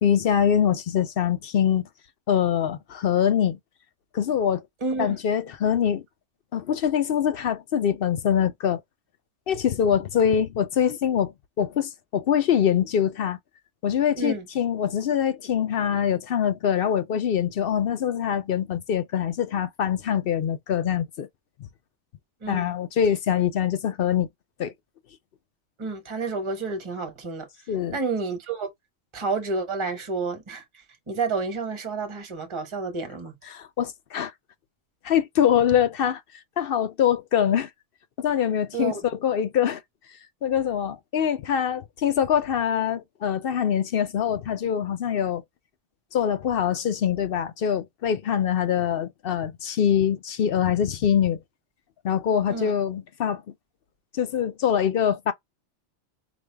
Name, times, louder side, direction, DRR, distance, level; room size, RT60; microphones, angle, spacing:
voice 1, 0.0-1.8 2.3-3.6 4.1-4.6 5.0-6.0 6.5-8.8 9.5-13.4 13.8-21.3 22.5-24.3 24.6-24.7 27.7-28.0 33.4-34.3 35.0-36.2 36.6-37.7 38.2-39.8 40.4-45.4 46.1-51.4 52.0-53.4 54.1-55.3, left 9 dB, 60° left, 0.7 m, -24 dB
voice 2, 4.8-5.2 14.2-14.4 22.4-22.7 25.8-27.5 27.9-28.7 29.1-30.6 31.1-33.4 38.7-39.0 52.5-52.7, right 4 dB, 25° right, 1.1 m, -30 dB
5.0 x 2.3 x 3.3 m
omnidirectional pair, 1.2 m